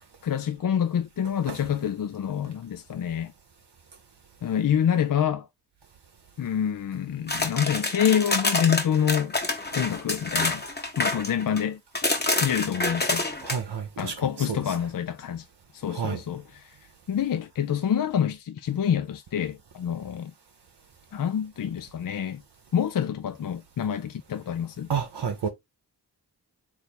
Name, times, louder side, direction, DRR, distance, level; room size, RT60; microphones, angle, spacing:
voice 1, 0.2-3.3 4.4-5.5 6.4-9.3 9.8-10.6 11.0-11.8 12.4-13.3 14.0-15.4 15.7-16.4 17.1-20.3 21.1-22.4 22.7-24.9, left 9 dB, 55° left, 0.5 m, -27 dB
sound 1, 7.3-11.6 11.9-13.6, left 2 dB, 25° left, 1.0 m, -27 dB
voice 2, 13.4-14.8 15.9-16.2 24.9-25.5, right 6 dB, 75° right, 0.8 m, -31 dB
3.3 x 2.7 x 4.2 m
cardioid pair, 40°, 41 cm